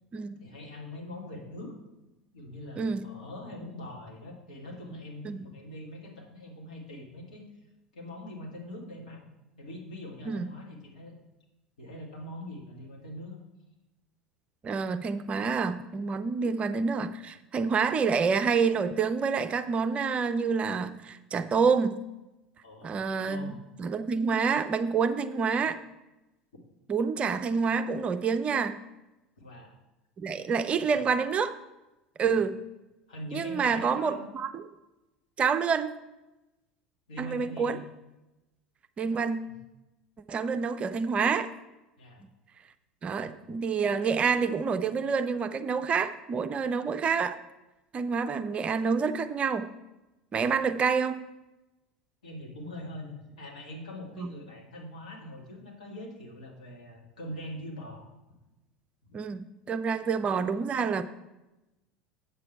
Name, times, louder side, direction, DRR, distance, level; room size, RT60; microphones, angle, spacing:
voice 1, 0.4-1.7 2.3-7.4 7.9-9.2 9.6-11.1 11.8-13.4 22.6-23.5 29.4-29.7 30.7-31.0 33.1-34.3 37.1-37.8 39.4-39.5 42.0-42.2 52.2-58.1 59.0-59.2 60.0-60.1, left 1 dB, 70° left, -1 dB, 2.1 m, -43 dB
voice 2, 2.8-3.1 5.2-5.5 10.3-10.5 14.6-22.0 22.8-23.5 23.8-25.8 26.9-28.8 30.2-31.5 32.2-32.6 33.3-34.7 35.4-35.9 37.2-37.8 39.0-39.4 40.3-41.5 43.0-47.4 47.9-49.7 50.3-51.2 54.2-54.3 59.1-61.0, right 5 dB, 30° right, 10 dB, 0.5 m, -28 dB
8.0 x 7.8 x 4.6 m, 0.99 s
figure-of-eight pair, 75°, 4 cm